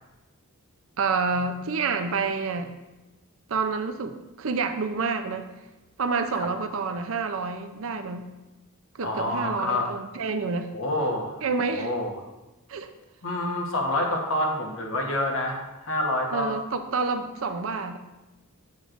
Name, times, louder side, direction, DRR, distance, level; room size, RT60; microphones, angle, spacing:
voice 1, 1.0-2.7 3.5-5.5 6.0-8.3 8.9-10.7 11.4-11.9 12.7-12.9 16.3-18.0, right 4 dB, 65° right, 8 dB, 0.6 m, -28 dB
voice 2, 9.0-9.9 10.7-11.4 11.7-12.1 13.2-16.6, left 1 dB, 65° left, 1 dB, 1.2 m, -27 dB
7.6 x 7.1 x 2.5 m, 1.1 s
head